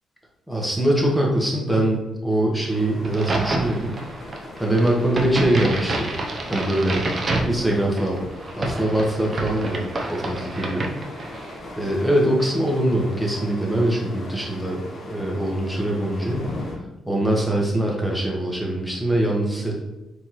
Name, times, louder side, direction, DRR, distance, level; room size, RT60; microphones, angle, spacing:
voice 1, 0.5-4.0 4.6-6.1 6.5-7.0 7.4-8.2 8.6-10.9 11.8-16.5 17.1-19.8, right 1 dB, ahead, -2 dB, 1.3 m, -23 dB
sound 1, 2.7-16.8, left 1 dB, 50° left, 1.0 m, -39 dB
Crack, 3.0-11.6, right 2 dB, 40° right, 0.7 m, -29 dB
4.4 x 3.6 x 3.1 m, 1.1 s
cardioid pair, 90°, 0 cm